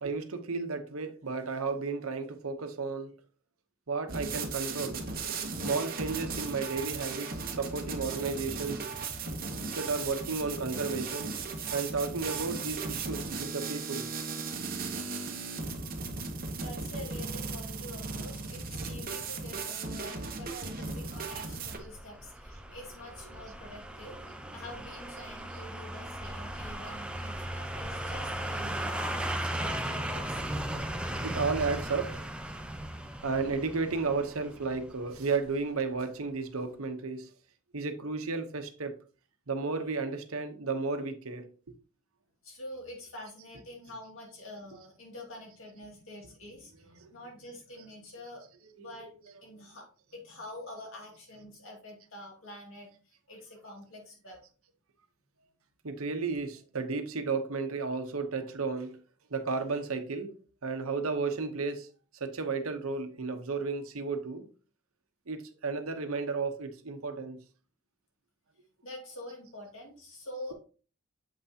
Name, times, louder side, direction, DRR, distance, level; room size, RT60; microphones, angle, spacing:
voice 1, 0.0-3.1 3.9-5.0 5.6-8.8 9.7-11.3 11.7-14.1 22.7-22.8 23.2-23.3 24.0-24.3 25.2-25.3 31.2-32.2 33.2-37.3 37.7-38.9 39.5-41.5 46.8-47.1 48.8-49.4 55.8-59.0 59.3-60.3 60.6-61.9 62.2-64.4 65.3-67.4, right 4 dB, 85° right, 1.0 m, -33 dB
sound 1, 4.1-21.8, right 4 dB, 45° right, 1.0 m, -36 dB
voice 2, 16.6-24.2 24.5-30.4 33.0-33.2 39.9-40.0 42.4-54.4 68.8-70.5, left 1 dB, 70° left, 2.5 m, -47 dB
sound 2, 20.7-35.6 35.9-36.0, right 1 dB, 5° right, 0.5 m, -37 dB
7.2 x 5.6 x 2.8 m
head